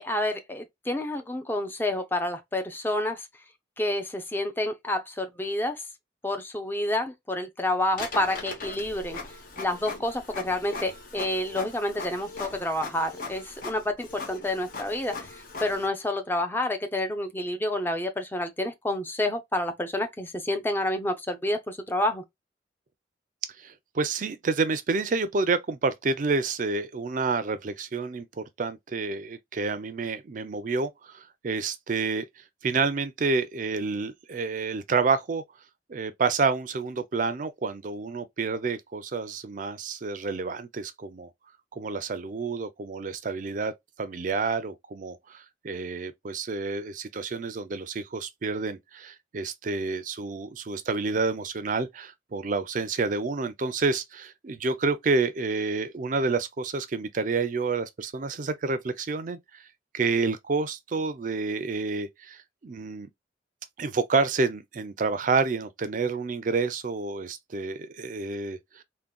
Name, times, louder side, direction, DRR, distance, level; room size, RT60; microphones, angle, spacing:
voice 1, 0.0-3.3 3.8-5.8 6.2-22.2, left 1 dB, 10° left, 0.5 m, -29 dB
Printer, 7.9-15.9, left 3 dB, 50° left, 0.9 m, -40 dB
voice 2, 23.6-32.3 32.6-35.4 35.9-41.3 41.8-43.7 44.0-59.6 59.9-63.1 63.8-68.8, right 4 dB, 45° right, 0.4 m, -29 dB
3.6 x 2.1 x 2.2 m
head